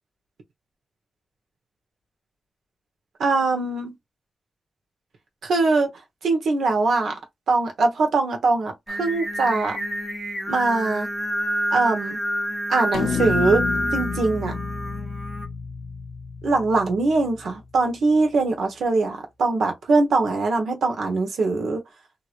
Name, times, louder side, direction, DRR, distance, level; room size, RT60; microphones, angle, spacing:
voice 1, 3.2-3.9 5.4-5.9 6.2-7.2 7.5-9.8 10.5-11.1 11.7-12.2 12.7-13.7 13.9-14.5 16.4-21.8, right 3 dB, 80° right, 1.1 m, -22 dB
Singing, 8.9-15.5, equal, 10° right, 1.0 m, -28 dB
sound 1, 12.9-17.4, left 5 dB, 85° left, 0.5 m, -30 dB
3.0 x 2.9 x 2.5 m
cardioid pair, 90°, 0 cm